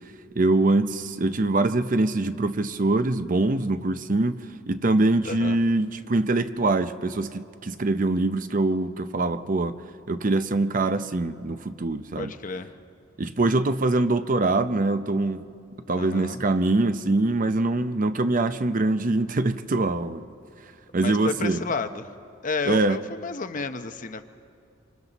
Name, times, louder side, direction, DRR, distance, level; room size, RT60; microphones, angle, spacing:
voice 1, 0.4-4.4 4.7-9.7 10.1-12.3 13.2-15.4 15.9-20.3 20.9-21.6 22.7-23.0, right 2 dB, 45° right, 11 dB, 0.6 m, -23 dB
voice 2, 5.2-5.6 12.2-12.7 15.9-16.4 20.9-22.1 22.4-24.2, left 4 dB, 45° left, 9 dB, 0.8 m, -31 dB
26.5 x 26.0 x 4.1 m, 2.5 s
head